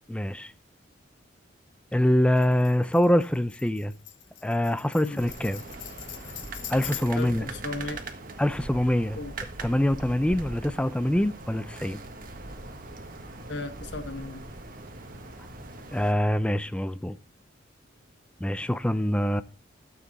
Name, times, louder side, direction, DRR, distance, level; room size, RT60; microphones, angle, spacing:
voice 1, 0.1-0.5 1.9-3.9 4.4-5.6 6.7-7.5 8.4-9.2 9.6-12.0 15.9-17.2 18.4-19.4, left 1 dB, 5° left, 0.5 m, -24 dB
Tambourine, 2.4-7.4, left 11 dB, 80° left, 1.3 m, -42 dB
sound 1, 5.2-16.1, right 2 dB, 50° right, 1.6 m, -41 dB
voice 2, 7.1-8.0 9.2-9.3 13.5-14.4, left 2 dB, 65° left, 1.1 m, -35 dB
13.0 x 7.6 x 4.1 m
head